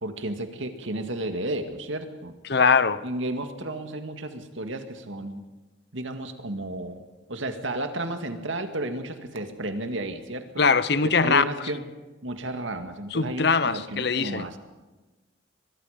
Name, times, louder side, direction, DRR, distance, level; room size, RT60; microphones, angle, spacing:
voice 1, 0.0-2.3 3.0-5.4 5.9-7.0 7.3-10.6 11.2-11.9 12.2-14.6, right 1 dB, 75° right, 2.1 m, -32 dB
voice 2, 2.5-3.0 10.6-11.4 13.1-14.5, left 5 dB, 55° left, 0.8 m, -21 dB
24.0 x 22.0 x 5.2 m
head